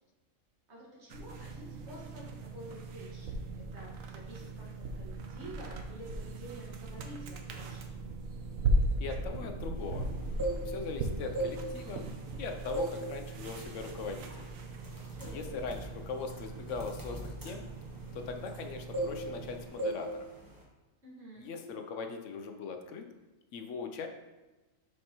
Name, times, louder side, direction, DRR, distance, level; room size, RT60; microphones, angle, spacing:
voice 1, 0.7-8.0 15.1-15.5 21.0-21.5, equal, 60° right, -4 dB, 1.8 m, -49 dB
sound 1, 1.1-19.7, right 2 dB, 90° right, 1.1 m, -38 dB
voice 2, 9.0-10.1 10.7-12.0 12.4-14.5 15.3-17.7 18.1-20.3 21.4-23.0 23.5-24.1, left 5 dB, 75° left, 5 dB, 0.9 m, -40 dB
sound 2, 10.2-10.9 11.3-12.3 12.7-13.1 13.4-13.7 14.3-14.5 14.8-18.6 18.9-19.5 19.8-20.1 20.3-20.6, right 1 dB, 15° right, 1.0 m, -37 dB
6.5 x 5.4 x 2.9 m, 1.1 s
omnidirectional pair, 1.3 m